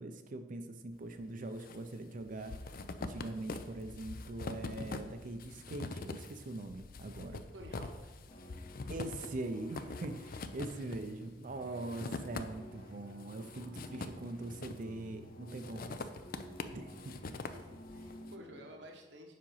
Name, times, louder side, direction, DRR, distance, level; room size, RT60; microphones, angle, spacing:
voice 1, 0.0-7.4 8.9-16.0 16.7-17.1, right 2 dB, 50° right, 7 dB, 0.5 m, -42 dB
sound 1, 1.2-1.8 2.1-12.8 13.2-15.0 15.5-18.2, left 3 dB, 55° left, 0.5 m, -44 dB
voice 2, 7.5-8.2 17.4-19.4, equal, 70° right, 2 dB, 1.1 m, -52 dB
sound 2, 8.3-18.8, equal, 35° left, 2.1 m, -53 dB
7.5 x 5.0 x 5.6 m, 1.2 s
head